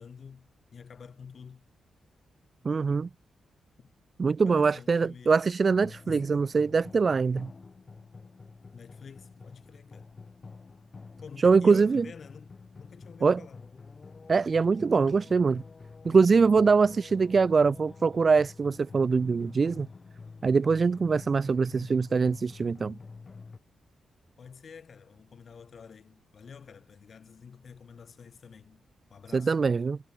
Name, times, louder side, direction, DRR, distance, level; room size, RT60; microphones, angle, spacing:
voice 1, 0.0-1.7 3.8-3.9 4.4-5.4 6.1-6.4 8.7-10.2 11.2-13.7 24.4-28.8 29.1-29.6, left 6 dB, 60° left, 7.7 m, -49 dB
voice 2, 2.6-3.1 4.2-7.5 11.4-12.0 13.2-13.4 14.3-15.6 16.0-19.9 20.4-23.0 29.3-30.0, right 5 dB, 50° right, 0.6 m, -23 dB
sound 1, 5.7-23.6, left 4 dB, 45° left, 7.5 m, -48 dB
supercardioid pair, 45°, 0 cm